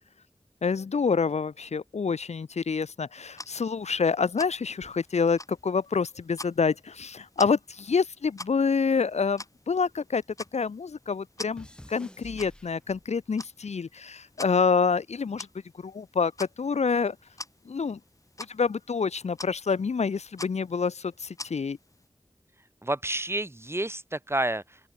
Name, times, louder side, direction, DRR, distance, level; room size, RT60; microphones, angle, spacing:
voice 1, 0.6-10.2 10.5-15.5 15.8-17.2 17.7-18.0 18.5-21.8, left 5 dB, 85° left, 0.6 m, -27 dB
Plastic Quartz clock ticking, 3.3-22.1, left 2 dB, 30° left, 0.9 m, -47 dB
sound 1, 4.8-7.3 7.6-10.2 10.5-13.3 14.1-14.4, equal, 10° left, 1.8 m, -53 dB
voice 2, 22.8-24.9, right 1 dB, 20° right, 0.8 m, -30 dB
open air
wide cardioid pair, 40°, 11 cm